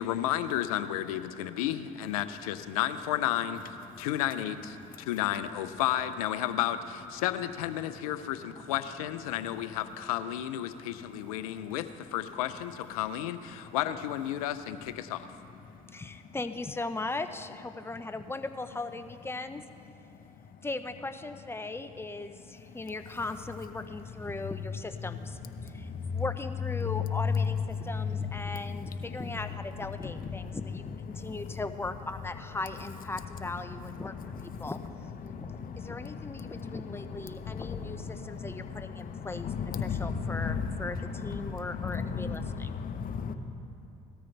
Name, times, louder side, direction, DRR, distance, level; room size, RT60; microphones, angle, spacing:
voice 1, 0.0-3.6 4.0-15.3, left 12 dB, 90° left, 12 dB, 0.6 m, -32 dB
voice 2, 11.4-11.8 13.6-13.8 15.7-16.1 20.1-20.3 22.6-22.8 25.1-26.2 26.8-27.4 27.7-29.3 30.0-30.6 31.1-31.6 33.7-34.7 35.2-43.3, left 6 dB, 50° left, 7 dB, 1.0 m, -36 dB
voice 3, 15.9-19.6 20.6-42.8, left 2 dB, 15° left, 9 dB, 0.8 m, -38 dB
18.5 x 13.5 x 3.3 m, 2.9 s
hypercardioid pair, 65°, 18 cm